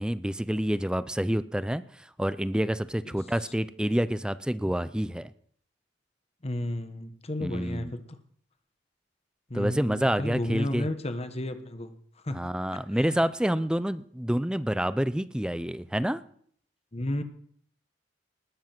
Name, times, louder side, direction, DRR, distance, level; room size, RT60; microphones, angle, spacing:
voice 1, 0.0-5.3 7.4-7.9 9.5-10.9 12.3-16.2, equal, 5° right, 15 dB, 0.5 m, -28 dB
voice 2, 6.4-8.2 9.5-11.9 12.3-12.4 13.0-13.1 16.9-17.2, left 1 dB, 35° left, 9 dB, 1.2 m, -32 dB
20.0 x 7.4 x 6.0 m, 0.62 s
head